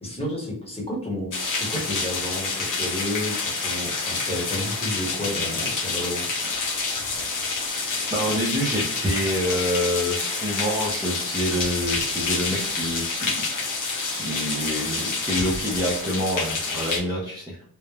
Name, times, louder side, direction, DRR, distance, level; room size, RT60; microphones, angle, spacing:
voice 1, 0.0-6.2, left 1 dB, 15° left, -2 dB, 0.9 m, -31 dB
sound 1, 1.3-17.0, left 3 dB, 60° left, 0.7 m, -28 dB
voice 2, 8.1-13.6 14.1-17.6, equal, 10° right, -6 dB, 0.5 m, -27 dB
3.0 x 2.0 x 2.3 m, 0.67 s
wide cardioid pair, 160°, 36 cm